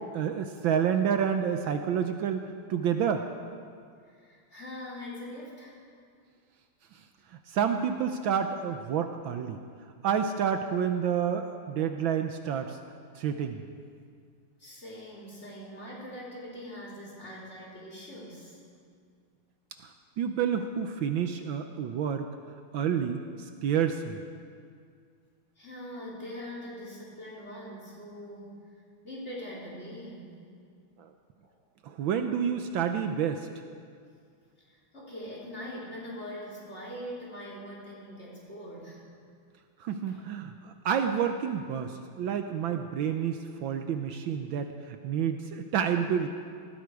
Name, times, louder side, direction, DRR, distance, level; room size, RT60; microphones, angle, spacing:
voice 1, 0.1-3.3 6.9-7.0 7.3-9.6 10.0-12.8 13.1-13.6 19.8-22.3 22.7-24.2 31.0-31.1 31.8-33.5 39.8-46.3, right 8 dB, 75° right, 6 dB, 1.4 m, -29 dB
voice 2, 4.0-5.8 14.6-18.6 25.6-28.6 29.0-30.4 31.4-31.5 34.9-39.0 40.1-40.2, equal, 30° left, -5 dB, 4.1 m, -42 dB
19.5 x 15.0 x 4.8 m, 2.2 s
omnidirectional pair, 2.4 m